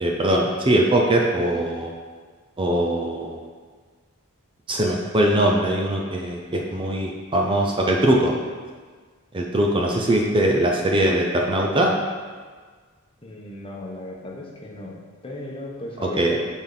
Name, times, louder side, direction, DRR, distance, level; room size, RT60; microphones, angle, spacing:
voice 1, 0.0-1.9 2.6-3.4 4.7-8.3 9.3-11.9 16.2-16.4, right 1 dB, 25° right, 0 dB, 0.6 m, -21 dB
voice 2, 13.2-14.9 15.2-16.4, left 1 dB, 25° left, -2 dB, 1.0 m, -36 dB
8.9 x 4.3 x 4.0 m, 1.5 s
head